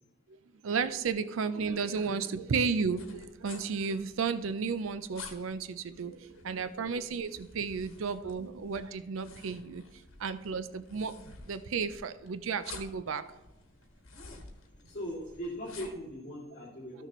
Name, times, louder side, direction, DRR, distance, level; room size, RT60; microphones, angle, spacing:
voice 1, 0.6-9.8 10.2-11.1 11.5-13.3, right 5 dB, 75° right, 12 dB, 0.5 m, -33 dB
sound 1, 2.8-16.1, left 4 dB, 80° left, 1.4 m, -52 dB
voice 2, 14.7-17.1, equal, 40° left, -10 dB, 2.4 m, -40 dB
13.5 x 6.6 x 3.0 m, 1.0 s
head